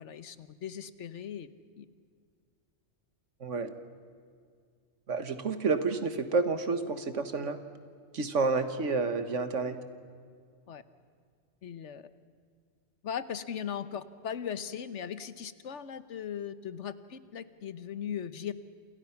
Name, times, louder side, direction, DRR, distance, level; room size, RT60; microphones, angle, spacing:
voice 1, 0.0-1.5 1.8-1.9 10.7-10.8 11.6-12.1 13.0-18.5, left 8 dB, 75° left, 13 dB, 1.3 m, -38 dB
voice 2, 3.4-3.7 5.1-7.6 8.1-9.8, right 4 dB, 85° right, 9 dB, 1.8 m, -29 dB
28.0 x 28.0 x 5.9 m, 2.1 s
omnidirectional pair, 1.2 m